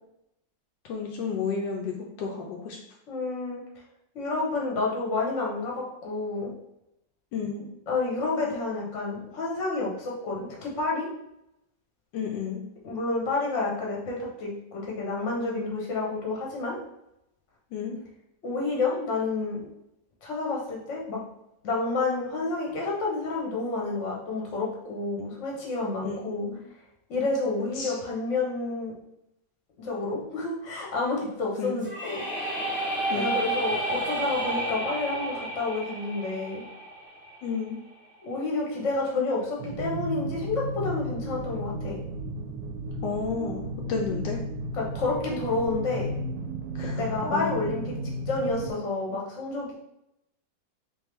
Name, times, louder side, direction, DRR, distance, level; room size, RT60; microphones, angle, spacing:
voice 1, 0.8-2.8 7.3-7.7 12.1-12.6 17.7-18.0 26.0-26.6 27.7-28.0 31.6-31.8 33.1-33.4 37.4-37.8 43.0-44.4 46.7-47.5, left 5 dB, 80° left, 0 dB, 1.3 m, -32 dB
voice 2, 3.1-3.6 4.1-6.5 7.9-11.1 12.8-16.8 18.4-19.7 20.2-21.2 21.6-26.5 27.1-28.9 29.8-32.3 33.1-36.6 38.2-42.0 44.7-46.1 46.8-47.9 48.3-49.7, left 3 dB, 45° left, -2 dB, 1.2 m, -29 dB
sound 1, 31.8-37.7, right 1 dB, 10° left, 0.6 m, -31 dB
sound 2, 39.6-48.7, right 1 dB, 75° right, 1.2 m, -34 dB
3.5 x 3.2 x 3.3 m, 0.82 s
omnidirectional pair, 2.0 m